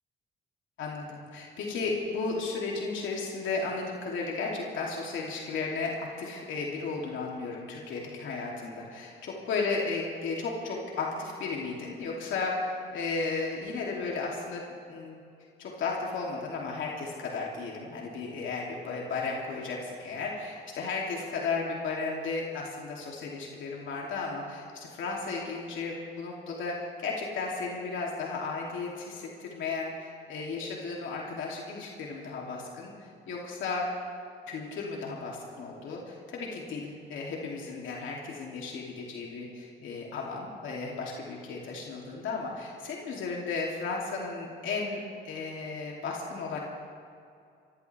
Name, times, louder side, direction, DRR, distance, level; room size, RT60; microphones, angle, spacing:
voice 1, 0.8-14.6 14.9-15.2 15.6-32.9 33.3-33.9 34.5-46.6, left 4 dB, 80° left, -2 dB, 3.0 m, -34 dB
27.0 x 15.5 x 3.5 m, 2.5 s
cardioid pair, 90°, 20 cm